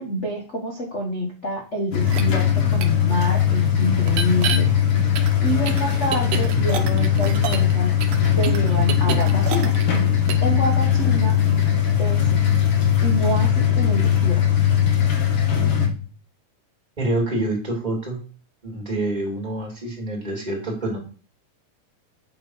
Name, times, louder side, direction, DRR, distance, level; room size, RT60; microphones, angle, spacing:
voice 1, 0.0-4.7 5.4-8.0 8.4-9.7 10.4-11.4 12.0-12.3 13.0-14.4, equal, 75° left, 0 dB, 0.6 m, -27 dB
sound 1, 1.9-15.9, left 9 dB, 50° left, 2.2 m, -19 dB
sound 2, 2.1-2.2 2.8-2.9 4.1-4.6 5.2-7.7 8.0-10.0 10.3-10.5, right 8 dB, 70° right, 1.8 m, -28 dB
voice 2, 17.0-18.2 18.6-21.0, right 2 dB, 15° right, 0 dB, 2.1 m, -26 dB
7.7 x 6.0 x 4.5 m, 0.38 s
omnidirectional pair, 3.7 m